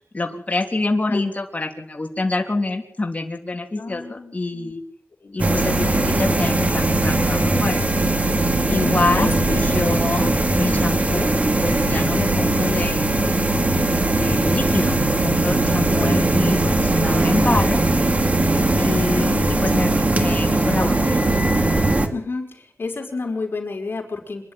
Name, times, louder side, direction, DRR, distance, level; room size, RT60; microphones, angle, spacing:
voice 1, 0.1-4.8 5.3-7.8 8.7-9.3 9.7-11.3 11.6-13.1 14.0-15.0 15.2-17.8 18.8-21.3, left 2 dB, 35° left, 2 dB, 3.4 m, -26 dB
voice 2, 3.8-4.7 5.2-5.4 8.7-9.6 16.0-16.3 19.1-19.6 20.1-20.4 22.1-24.5, left 3 dB, 60° left, 3 dB, 5.5 m, -31 dB
sound 1, 5.4-22.1, right 2 dB, 35° right, 2.6 m, -19 dB
26.5 x 11.0 x 9.8 m, 0.64 s
wide cardioid pair, 80°, 4 cm